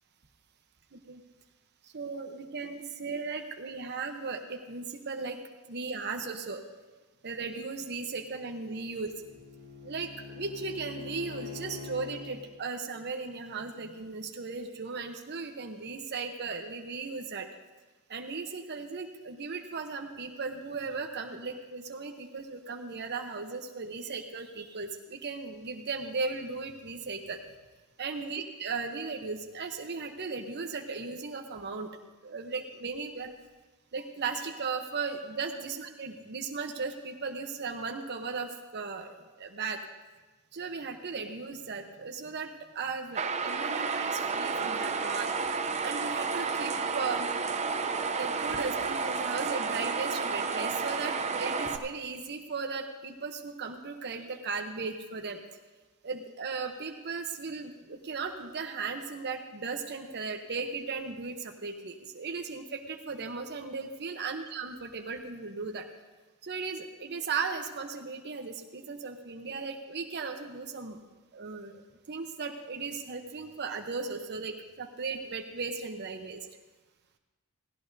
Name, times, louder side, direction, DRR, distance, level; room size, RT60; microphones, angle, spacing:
voice 1, 1.8-5.4 5.7-6.6 7.2-9.1 9.8-17.5 18.1-27.4 28.0-31.9 32.2-33.3 33.9-39.8 40.5-45.5 45.8-47.3 48.1-55.4 56.0-65.9 66.4-71.0 71.3-71.8 72.1-76.4, right 4 dB, 50° right, 4 dB, 0.9 m, -37 dB
Bowed string instrument, 8.3-12.3, left 4 dB, 60° left, 5.4 m, -44 dB
sound 1, 43.1-51.8, right 5 dB, 30° right, 0.6 m, -31 dB
16.5 x 16.5 x 2.7 m, 1.2 s
head